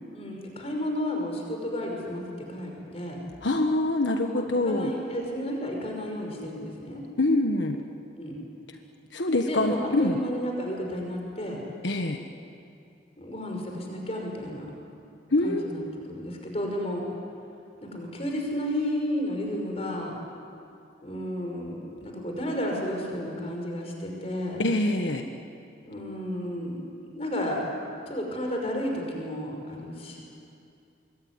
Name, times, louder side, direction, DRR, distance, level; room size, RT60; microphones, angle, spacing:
voice 1, 0.1-2.2 2.5-3.2 4.3-7.0 8.2-8.4 9.5-11.6 13.2-14.7 15.4-17.0 17.8-20.1 21.0-24.6 25.8-27.6 28.1-30.2, equal, 35° left, 1 dB, 5.6 m, -32 dB
voice 2, 3.4-4.9 7.2-7.8 9.1-10.2 11.8-12.2 15.3-15.7 24.6-25.3, left 2 dB, 85° left, 4 dB, 1.4 m, -25 dB
25.5 x 22.5 x 9.7 m, 2.6 s
head